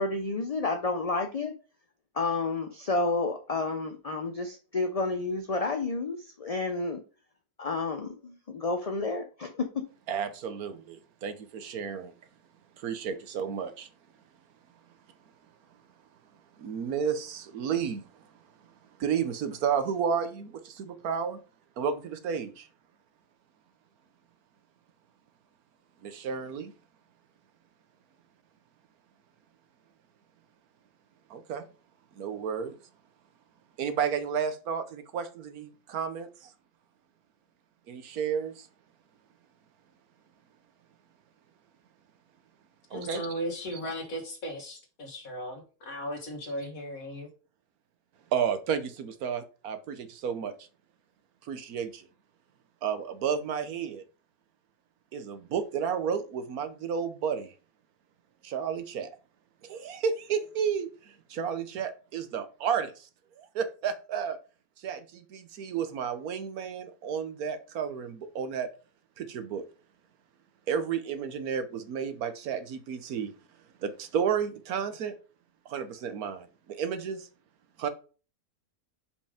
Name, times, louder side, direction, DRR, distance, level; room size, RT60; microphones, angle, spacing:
voice 1, 0.0-1.5 2.1-7.0 7.6-9.7, left 3 dB, 40° left, 0.5 m, -30 dB
voice 2, 10.1-12.1 12.8-13.9 16.6-18.0 19.0-21.4 21.8-22.7 26.0-26.7 31.3-31.6 32.2-32.8 33.8-36.5 37.9-38.7 42.9-43.8 48.3-50.5 51.5-52.1 52.8-54.0 55.1-57.5 58.4-59.1 59.6-63.1 63.4-64.4 64.8-68.7 69.2-69.6 70.7-73.3 73.8-75.1 75.7-77.3 77.8-77.9, right 7 dB, 80° right, 1.3 m, -32 dB
voice 3, 42.9-47.3, equal, 70° left, 2.0 m, -37 dB
5.4 x 5.2 x 5.0 m
omnidirectional pair, 1.5 m